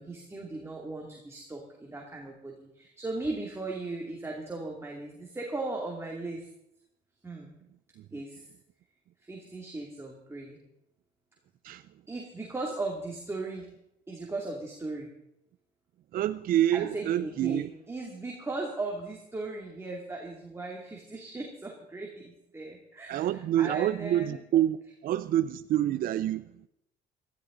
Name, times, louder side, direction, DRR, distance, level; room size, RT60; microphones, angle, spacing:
voice 1, 0.0-6.5 7.2-7.5 8.1-8.5 9.2-10.6 12.1-13.7 14.1-15.1 16.7-24.4, right 2 dB, 15° right, 2.6 m, -37 dB
voice 2, 16.1-17.7 23.1-24.8 25.0-26.7, right 12 dB, 60° right, 0.5 m, -27 dB
18.0 x 13.5 x 3.9 m
cardioid pair, 110°, 17 cm